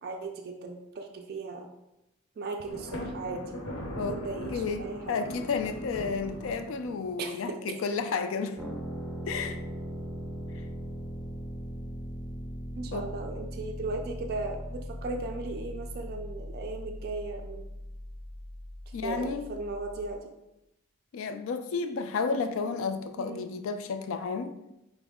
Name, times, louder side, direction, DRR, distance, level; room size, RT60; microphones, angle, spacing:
voice 1, 0.0-1.7 2.4-3.6 4.0-5.2 7.2-7.3 12.8-17.7 19.0-20.3 23.2-23.5, right 3 dB, 45° right, 3 dB, 0.3 m, -37 dB
Thunder, 2.7-7.3, equal, 85° left, 1.0 m, -39 dB
voice 2, 4.5-8.6 9.3-9.6 12.9-13.1 18.9-19.5 21.1-24.5, left 4 dB, 65° left, 9 dB, 0.3 m, -32 dB
sound 1, 8.6-20.2, equal, ahead, 0.6 m, -39 dB
4.8 x 2.1 x 3.5 m, 0.92 s
head